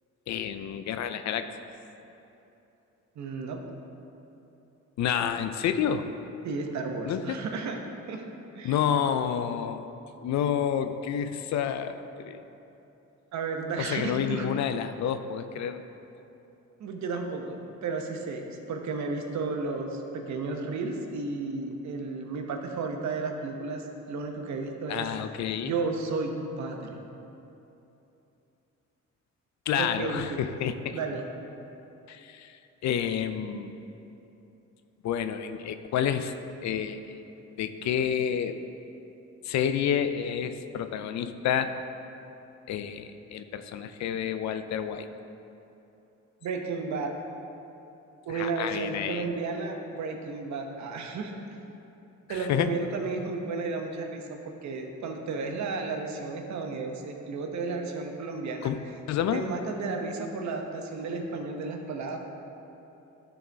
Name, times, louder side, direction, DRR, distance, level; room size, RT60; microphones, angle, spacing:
voice 1, 0.3-1.5 5.0-6.1 7.0-7.5 8.6-9.9 10.2-12.4 13.8-15.8 24.9-25.7 29.7-31.0 32.1-33.7 35.0-37.1 37.6-38.6 39.4-41.7 42.7-45.1 48.3-49.3 52.3-52.8 58.6-59.5, left 8 dB, 65° left, 10 dB, 0.5 m, -29 dB
voice 2, 3.2-3.6 6.4-7.8 8.1-8.2 8.5-8.8 13.3-14.5 16.8-23.8 24.1-25.1 25.6-27.0 29.8-30.4 30.9-31.2 46.4-47.1 48.3-51.4 52.3-58.7 59.3-62.2, right 4 dB, 65° right, 3 dB, 0.9 m, -33 dB
12.5 x 4.2 x 3.4 m, 2.9 s
cardioid pair, 90°, 30 cm